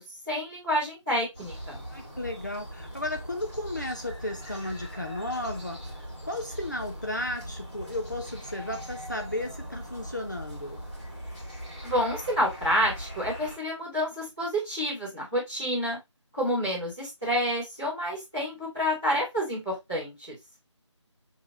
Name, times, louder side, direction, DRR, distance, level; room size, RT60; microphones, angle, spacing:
voice 1, 0.3-1.8 11.8-16.0 16.3-20.3, equal, 5° right, 0.8 m, -29 dB
sound 1, 1.3-13.6, equal, 20° left, 1.4 m, -41 dB
voice 2, 1.9-10.8, left 1 dB, 35° left, 0.5 m, -34 dB
5.9 x 2.8 x 2.8 m
figure-of-eight pair, 180°, 16 cm